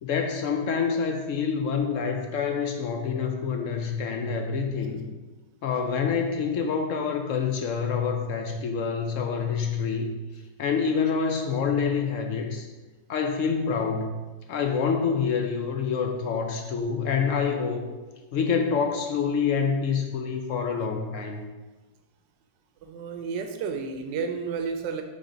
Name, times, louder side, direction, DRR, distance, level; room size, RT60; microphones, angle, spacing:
voice 1, 0.0-5.1 5.6-10.1 10.6-12.7 13.1-14.1 14.5-17.9 18.3-21.4, left 6 dB, 70° left, 4 dB, 0.7 m, -27 dB
voice 2, 22.9-25.0, right 5 dB, 85° right, 6 dB, 1.3 m, -31 dB
5.8 x 3.6 x 5.0 m, 1.2 s
omnidirectional pair, 1.9 m